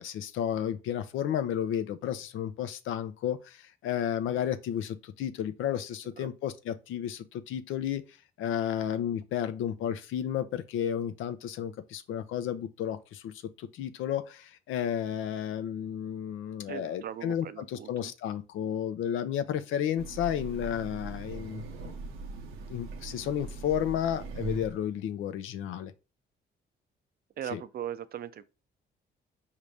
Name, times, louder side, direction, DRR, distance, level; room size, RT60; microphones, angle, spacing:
voice 1, 0.0-8.0 8.4-22.0 22.7-25.9 27.5-27.6, left 9 dB, 80° left, 0.6 m, -32 dB
voice 2, 16.7-18.1 27.4-28.5, right 10 dB, 50° right, 0.5 m, -39 dB
Train, 20.0-24.9, right 3 dB, 85° right, 0.8 m, -40 dB
5.0 x 2.8 x 3.3 m
cardioid pair, 90°, 20 cm